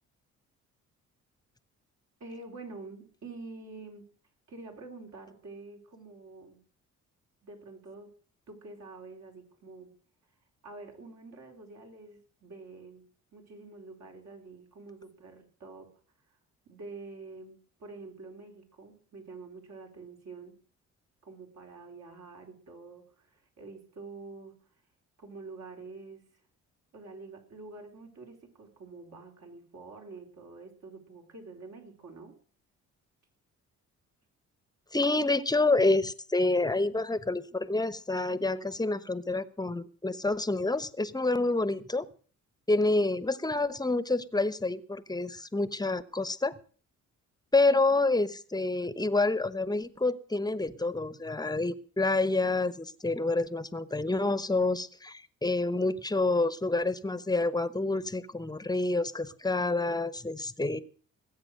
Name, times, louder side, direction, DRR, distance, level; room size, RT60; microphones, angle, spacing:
voice 1, 2.2-4.0 4.5-6.6 7.4-8.2 8.5-9.9 10.6-13.1 13.3-16.0 16.3-16.4 16.6-20.6 21.2-24.7 25.2-26.4 26.9-32.4, right 3 dB, 60° right, 2 dB, 4.4 m, -47 dB
voice 2, 34.9-42.0 42.7-46.5 47.5-60.8, left 2 dB, 15° left, 16 dB, 1.0 m, -28 dB
19.5 x 8.3 x 6.5 m, 0.43 s
cardioid pair, 90°, 30 cm